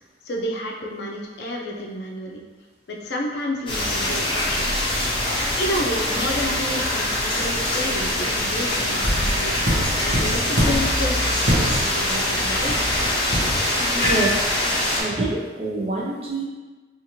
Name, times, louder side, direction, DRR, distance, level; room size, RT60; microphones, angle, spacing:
voice 1, 0.2-2.4 2.9-4.9 5.6-9.5 10.0-12.7, equal, 70° left, -1 dB, 0.4 m, -30 dB
sound 1, 3.7-15.0, left 1 dB, 30° left, 0.6 m, -23 dB
sound 2, 8.9-11.0 11.4-12.1 12.6-14.3, equal, 85° right, 0.7 m, -25 dB
voice 2, 13.9-14.5 15.0-16.4, right 2 dB, 35° right, -3 dB, 0.5 m, -26 dB
2.7 x 2.4 x 2.8 m, 1.2 s
head